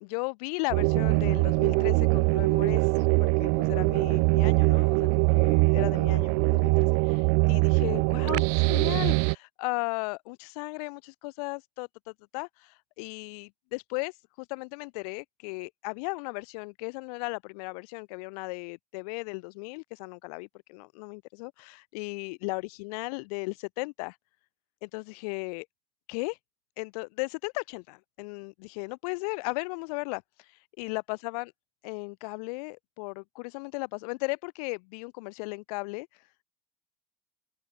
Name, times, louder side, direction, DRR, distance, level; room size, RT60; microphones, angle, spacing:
voice 1, 0.0-24.2 24.8-25.7 26.1-26.4 26.8-31.5 31.8-36.4, left 29 dB, 75° left, 1.1 m, -36 dB
sound 1, 0.7-9.3, right 40 dB or more, 70° right, 0.4 m, -23 dB
open air
hypercardioid pair, 75°, 20 cm